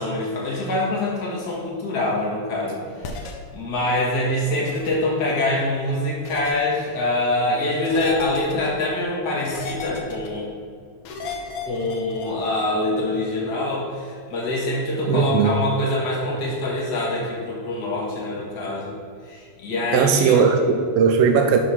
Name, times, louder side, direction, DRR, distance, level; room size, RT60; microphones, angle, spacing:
voice 1, 0.0-10.5 11.6-18.9 19.2-20.5, left 1 dB, 40° left, -4 dB, 2.0 m, -25 dB
sound 1, 3.0-3.3 4.6-4.9 6.2-6.5 7.8-8.7 9.4-10.3 11.0-12.3, left 4 dB, 65° left, 1.6 m, -33 dB
voice 2, 15.1-15.6 19.9-21.6, right 6 dB, 80° right, 5 dB, 1.4 m, -18 dB
11.5 x 3.8 x 5.8 m, 2.2 s
omnidirectional pair, 3.3 m